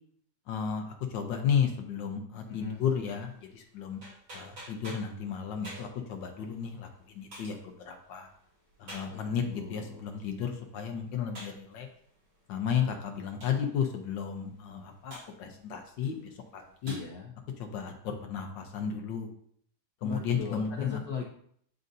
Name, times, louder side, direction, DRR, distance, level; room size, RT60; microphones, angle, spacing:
voice 1, 0.5-0.8 1.1-4.0 4.3-6.9 7.1-8.3 8.8-11.9 12.5-16.2 16.5-17.0 17.6-19.3 20.0-21.0, left 7 dB, 80° left, 3 dB, 1.5 m, -33 dB
voice 2, 2.5-2.8 9.1-10.0 16.8-17.3 20.0-21.2, left 7 dB, 65° left, -1 dB, 1.1 m, -38 dB
sound 1, 2.5-17.0, right 1 dB, 80° right, 3.5 m, -52 dB
9.5 x 3.8 x 2.6 m, 0.64 s
omnidirectional pair, 1.9 m